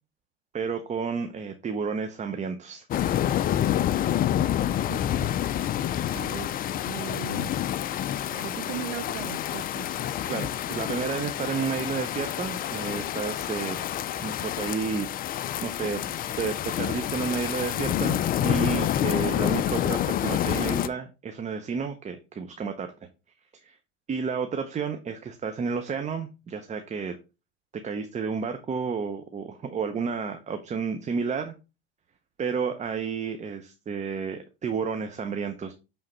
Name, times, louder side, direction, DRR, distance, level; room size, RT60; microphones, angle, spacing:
voice 1, 0.5-2.9 10.3-13.8 14.2-15.1 15.6-16.0 16.4-22.9 23.6-23.8 24.1-27.2 27.8-31.5 32.4-35.7, right 5 dB, 25° right, 0.8 m, -31 dB
sound 1, 2.9-20.9, left 11 dB, 30° left, 0.4 m, -28 dB
voice 2, 6.1-7.6 8.3-9.9, right 15 dB, 70° right, 0.6 m, -38 dB
7.6 x 3.7 x 4.3 m
hypercardioid pair, 100°, 30 cm